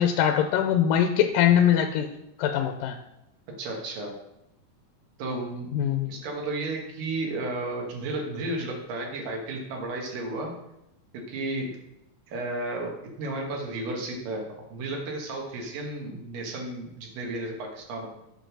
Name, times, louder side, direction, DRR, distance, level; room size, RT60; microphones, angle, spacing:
voice 1, 0.0-2.1 2.4-3.0 5.7-6.1, left 9 dB, 90° left, 5 dB, 2.3 m, -22 dB
voice 2, 3.6-4.1 5.2-5.7 6.1-10.5 11.1-11.7 12.3-14.4 14.7-18.1, right 2 dB, 80° right, 0 dB, 3.2 m, -33 dB
8.1 x 5.1 x 6.4 m, 0.86 s
omnidirectional pair, 3.9 m